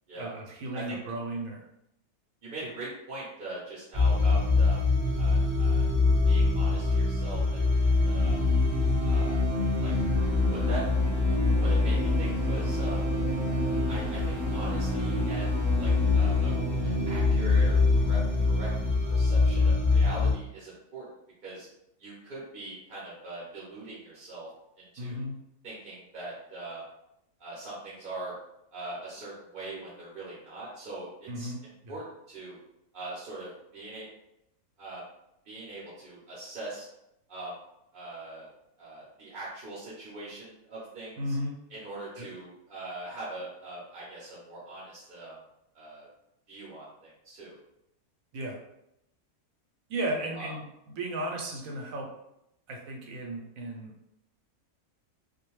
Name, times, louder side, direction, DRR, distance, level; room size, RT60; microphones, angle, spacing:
voice 1, 0.1-1.6 2.6-2.7 25.0-25.4 31.3-32.0 41.2-41.5 42.2-42.3 48.3-48.6 49.9-52.1 52.7-53.9, right 1 dB, 70° right, 0 dB, 1.0 m, -35 dB
voice 2, 2.4-4.8 5.1-5.9 6.2-8.4 9.0-9.4 9.8-9.9 10.3-10.8 11.6-13.0 13.5-16.5 16.8-18.7 19.1-21.1 21.4-21.7 22.0-24.5 24.8-25.2 25.6-26.8 27.4-28.3 28.7-31.5 31.9-32.6 32.9-34.1 34.8-35.0 35.5-36.9 37.3-37.5 37.9-38.5 38.8-41.4 41.7-45.3 45.7-46.1 46.5-47.5 50.3-50.5, right 2 dB, 50° right, -6 dB, 0.7 m, -41 dB
sound 1, 3.9-20.3, left 3 dB, 15° left, 0.7 m, -24 dB
2.4 x 2.1 x 3.0 m, 0.81 s
omnidirectional pair, 1.6 m